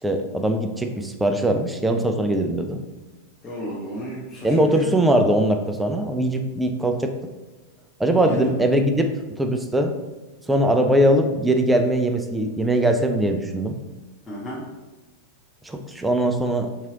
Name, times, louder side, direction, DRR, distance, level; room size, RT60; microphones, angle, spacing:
voice 1, 0.0-2.8 4.4-7.1 8.0-9.1 9.4-9.9 10.5-13.7 15.6-16.7, right 1 dB, 5° right, 5 dB, 0.4 m, -21 dB
voice 2, 3.4-4.9 8.1-8.5 14.3-14.6, equal, 15° left, -9 dB, 0.9 m, -33 dB
3.7 x 3.0 x 2.9 m, 1.2 s
figure-of-eight pair, 90°, 0 cm